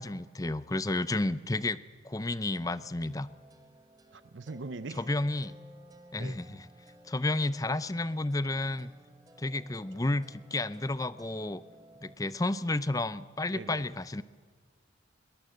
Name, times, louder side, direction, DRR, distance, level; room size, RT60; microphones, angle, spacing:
voice 1, 0.0-3.3 5.0-5.6 6.1-6.7 7.1-8.9 9.4-11.6 12.0-14.2, left 2 dB, 20° left, 16 dB, 0.5 m, -31 dB
sound 1, 2.5-12.2, right 1 dB, 20° right, 1.3 m, -57 dB
voice 2, 4.1-5.0 6.2-6.4 9.9-10.0 13.5-13.9, right 3 dB, 75° right, 15 dB, 0.7 m, -42 dB
21.5 x 21.0 x 7.8 m, 1.6 s
head